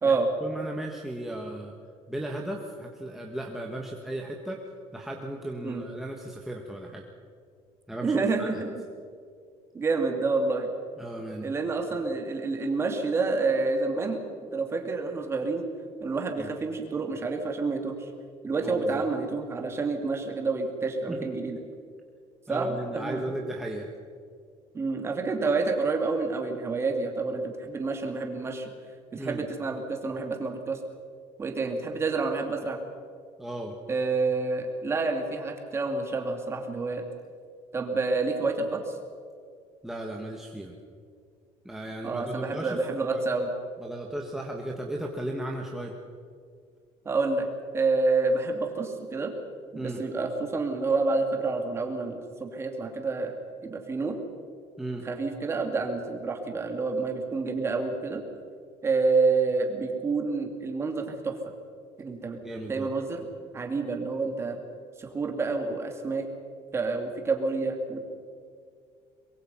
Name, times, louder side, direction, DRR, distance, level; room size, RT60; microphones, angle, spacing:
voice 1, 0.4-1.7 2.1-4.6 4.9-7.0 7.9-8.6 11.0-11.5 16.4-16.5 18.6-19.0 21.1-21.3 22.5-23.9 29.2-29.4 33.4-33.7 39.8-40.7 41.6-42.8 43.1-43.2 43.8-45.9 49.7-50.0 54.8-55.0 62.4-62.9, right 1 dB, 5° right, 0 dB, 1.6 m, -36 dB
voice 2, 8.0-8.7 9.7-10.7 11.4-14.2 14.5-15.6 16.0-18.0 18.4-21.6 22.5-23.2 24.7-28.7 29.1-30.8 31.4-32.8 33.9-37.0 37.7-38.9 42.0-43.5 47.0-47.5 47.7-49.3 49.7-53.3 53.6-54.2 55.0-58.2 58.8-61.4 62.0-62.4 62.7-63.3 63.5-64.6 65.0-66.3 66.7-68.0, right 3 dB, 20° right, 3 dB, 2.7 m, -28 dB
24.0 x 22.5 x 5.7 m, 2.2 s
cardioid pair, 155°, 12 cm